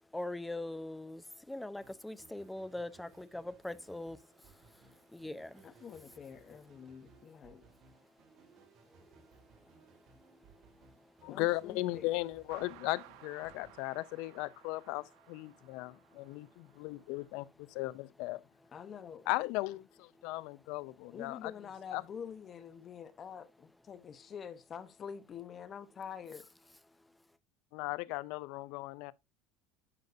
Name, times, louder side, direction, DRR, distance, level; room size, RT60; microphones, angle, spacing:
voice 1, 0.0-5.8 6.7-7.2 7.7-11.2 13.5-13.6 15.5-17.2 20.2-20.5 26.9-27.2, left 1 dB, 5° left, 0.7 m, -45 dB
sound 1, 1.8-14.7, right 5 dB, 50° right, 2.9 m, -63 dB
voice 2, 5.6-7.6 11.3-12.1 18.7-19.3 21.1-26.5, left 7 dB, 30° left, 0.9 m, -47 dB
voice 3, 11.2-18.4 19.3-21.5 21.9-22.0 27.7-29.1, left 19 dB, 65° left, 0.4 m, -37 dB
sound 2, 12.5-17.3, right 12 dB, 75° right, 1.5 m, -58 dB
11.0 x 6.5 x 2.6 m
supercardioid pair, 130°, 0 cm